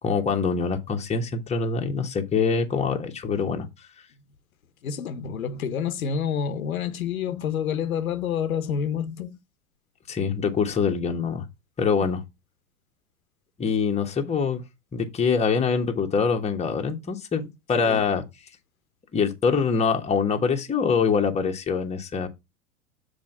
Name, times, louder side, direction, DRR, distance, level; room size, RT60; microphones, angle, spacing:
voice 1, 0.0-3.7 10.1-11.5 11.8-12.2 13.6-14.6 14.9-18.2 19.1-22.3, left 5 dB, 15° left, 1.3 m, -24 dB
voice 2, 4.8-9.4 17.8-18.0, left 7 dB, 80° left, 0.9 m, -28 dB
7.4 x 3.5 x 5.6 m
hypercardioid pair, 105°, 41 cm